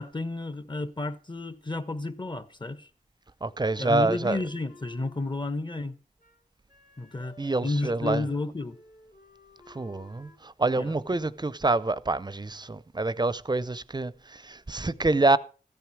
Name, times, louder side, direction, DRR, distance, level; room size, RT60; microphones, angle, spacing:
voice 1, 0.0-2.9 3.8-6.0 7.0-8.8 10.7-11.0, left 2 dB, 30° left, 1.2 m, -32 dB
voice 2, 3.4-4.4 7.4-8.2 9.7-15.4, right 2 dB, 30° right, 0.6 m, -27 dB
Wind instrument woodwind instrument, 3.7-7.9 8.2-8.4 8.7-11.0, left 2 dB, 60° left, 2.7 m, -56 dB
14.0 x 9.3 x 4.7 m
wide cardioid pair, 50°, 16 cm